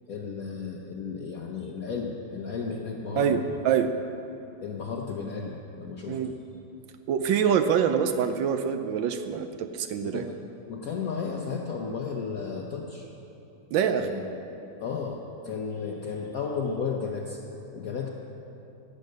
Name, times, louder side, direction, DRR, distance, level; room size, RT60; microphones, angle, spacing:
voice 1, 0.1-3.4 4.6-6.2 10.1-10.4 10.7-13.1 13.9-14.2 14.8-17.4 17.7-18.1, left 5 dB, 60° left, 0 dB, 1.1 m, -33 dB
voice 2, 3.2-3.9 6.1-6.3 7.1-10.2 13.7-14.1, right 7 dB, 80° right, 8 dB, 1.3 m, -25 dB
17.0 x 6.7 x 6.6 m, 2.9 s
omnidirectional pair, 2.1 m